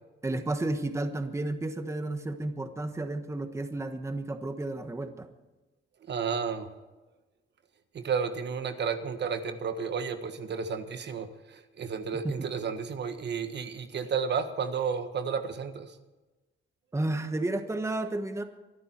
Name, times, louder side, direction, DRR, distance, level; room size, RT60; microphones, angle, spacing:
voice 1, 0.2-5.3 12.2-12.3 16.9-18.4, right 2 dB, 15° right, 7 dB, 1.3 m, -32 dB
voice 2, 6.0-6.7 7.9-16.0, right 6 dB, 60° right, 9 dB, 1.4 m, -32 dB
23.0 x 12.0 x 4.5 m, 1.1 s
cardioid pair, 125°, 20 cm